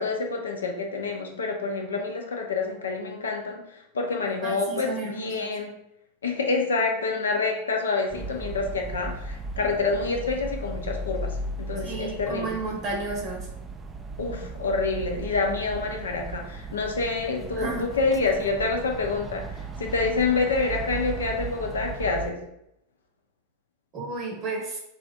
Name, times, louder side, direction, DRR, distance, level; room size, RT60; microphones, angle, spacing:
voice 1, 0.0-3.6 3.9-5.7 6.2-12.5 14.2-22.4, left 4 dB, 70° left, 2 dB, 0.6 m, -27 dB
voice 2, 4.4-5.6 11.8-13.5 17.6-17.9 23.9-24.8, right 3 dB, 35° right, -1 dB, 0.8 m, -32 dB
sound 1, 8.1-22.3, right 3 dB, 15° right, 0.3 m, -36 dB
3.2 x 2.5 x 3.8 m, 0.81 s
figure-of-eight pair, 90°, 0 cm